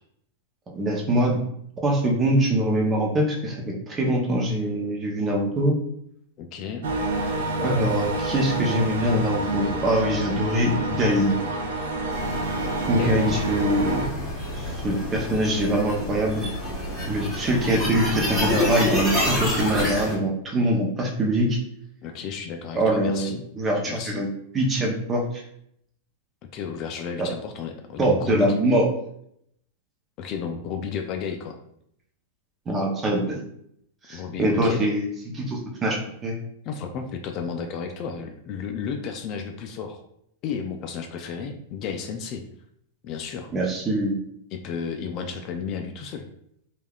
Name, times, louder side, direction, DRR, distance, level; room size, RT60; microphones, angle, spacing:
voice 1, 0.7-1.4 1.8-5.8 7.6-11.3 12.9-14.1 14.5-16.4 17.1-21.6 22.7-24.3 24.5-25.4 27.2-27.3 28.0-28.9 32.7-33.4 34.1-35.1 35.3-36.3 43.5-44.2, right 1 dB, 20° right, 0 dB, 0.6 m, -23 dB
voice 2, 6.4-6.9 12.9-13.2 22.0-23.4 23.8-24.3 26.4-28.6 30.2-31.6 34.1-34.8 36.6-40.0 40.4-42.4 43.0-43.5 44.5-46.3, left 6 dB, 40° left, 5 dB, 0.3 m, -33 dB
sound 1, 6.8-14.1, right 2 dB, 80° right, 0.5 m, -28 dB
sound 2, 12.1-20.1, left 1 dB, ahead, 1.1 m, -28 dB
3.3 x 2.3 x 2.3 m, 0.73 s
supercardioid pair, 140°, 0 cm